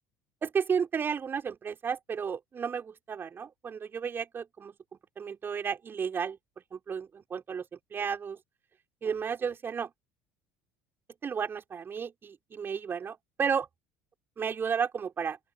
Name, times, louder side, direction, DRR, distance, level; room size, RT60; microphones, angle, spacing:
voice 1, 0.4-6.4 6.7-8.4 9.0-9.9 11.2-13.7 14.4-15.4, right 6 dB, 30° right, 5.9 m, -33 dB
open air
figure-of-eight pair, 65°, 7 cm